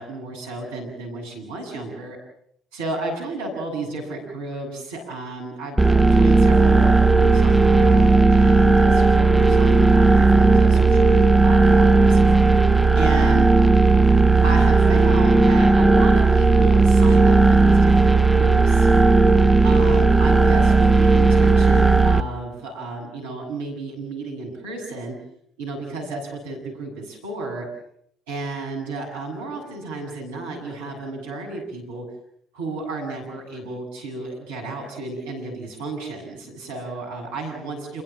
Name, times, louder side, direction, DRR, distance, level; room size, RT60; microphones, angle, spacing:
voice 1, 0.0-2.2 2.7-12.4 12.9-13.5 14.4-18.9 19.6-25.2 25.6-27.7 28.3-32.0 32.5-38.0, right 3 dB, 80° right, 1 dB, 7.9 m, -32 dB
sound 1, 5.8-22.2, right 3 dB, 10° right, 1.2 m, -15 dB
27.5 x 22.5 x 7.5 m, 0.69 s
hypercardioid pair, 50°, 0 cm